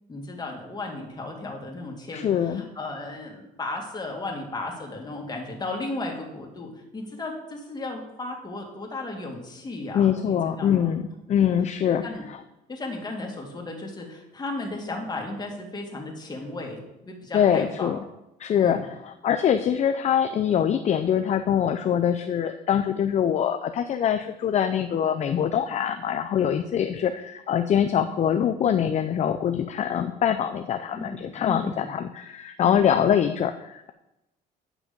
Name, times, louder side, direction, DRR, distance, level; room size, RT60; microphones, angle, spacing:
voice 1, 0.1-11.0 12.0-12.2 12.7-17.9 18.6-18.9 30.9-31.9 32.6-32.9, left 2 dB, 25° left, 1 dB, 2.2 m, -35 dB
voice 2, 2.1-2.6 9.9-11.0 11.3-12.0 12.3-12.4 17.3-18.0 18.4-33.9, left 9 dB, 40° left, 8 dB, 0.5 m, -24 dB
8.8 x 6.0 x 5.3 m, 0.91 s
cardioid pair, 110°, 17 cm